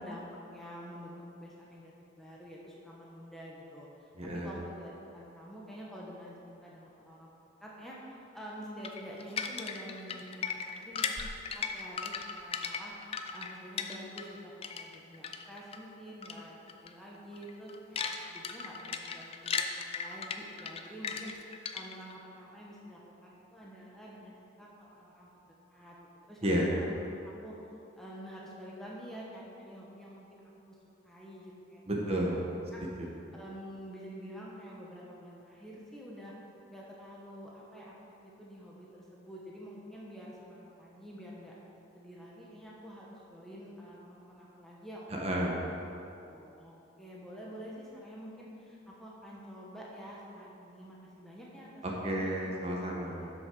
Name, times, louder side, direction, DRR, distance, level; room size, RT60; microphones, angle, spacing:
voice 1, 0.0-6.3 6.6-7.3 7.6-12.9 13.3-26.0 26.3-27.6 27.9-30.8 31.0-32.3 32.7-32.8 33.3-36.3 36.7-37.9 38.2-41.5 41.9-45.8 46.2-52.3, equal, ahead, -5 dB, 1.1 m, -48 dB
voice 2, 4.2-4.5 26.4-26.8 31.9-32.5 33.0-33.1 45.1-45.7 51.8-53.3, equal, 30° right, -2 dB, 1.1 m, -31 dB
sound 1, 8.8-14.4 14.6-15.8 16.2-16.4 16.7-16.9 17.3-22.1, left 6 dB, 30° left, 0.4 m, -37 dB
7.9 x 6.2 x 6.2 m, 2.8 s
head